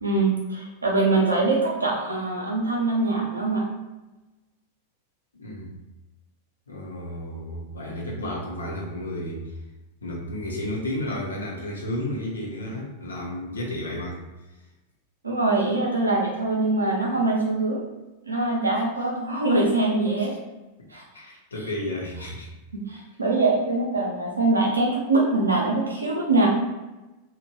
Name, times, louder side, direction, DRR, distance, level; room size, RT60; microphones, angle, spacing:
voice 1, 0.0-3.7 15.2-17.8 18.3-20.3 20.9-21.0 22.7-26.5, right 2 dB, 80° right, -2 dB, 0.7 m, -23 dB
voice 2, 5.3-5.8 6.7-9.5 10.0-14.2 20.2-20.3 21.1-22.5, left 1 dB, 75° left, -2 dB, 0.7 m, -32 dB
2.9 x 2.5 x 2.7 m, 1.1 s
figure-of-eight pair, 90°, 0 cm